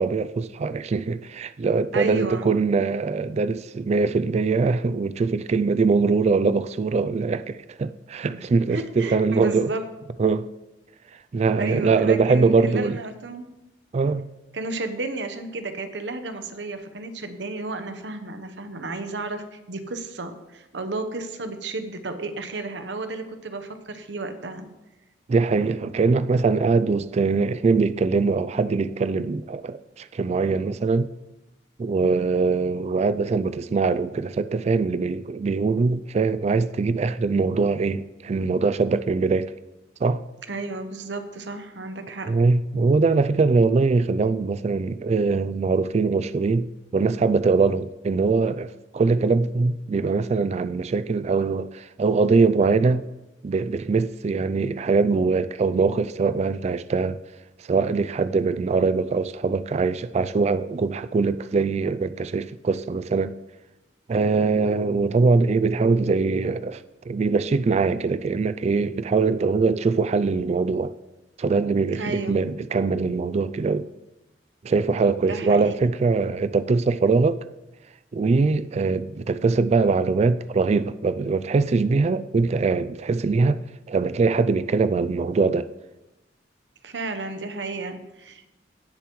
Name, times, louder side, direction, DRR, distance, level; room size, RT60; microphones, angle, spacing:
voice 1, 0.0-9.7 10.2-10.5 11.3-13.0 13.9-14.3 25.3-31.1 31.8-39.5 40.0-40.2 42.3-53.0 53.4-57.2 57.6-63.3 64.1-70.9 71.4-73.9 74.6-77.4 78.1-83.6 83.9-85.7, right 4 dB, 40° right, 0.3 m, -22 dB
voice 2, 1.9-2.5 8.2-8.4 8.7-9.8 11.6-13.5 14.5-24.7 32.0-32.3 40.5-42.3 71.9-72.4 75.2-75.7 86.8-88.5, right 2 dB, 90° right, 1.0 m, -32 dB
17.5 x 6.8 x 3.1 m
head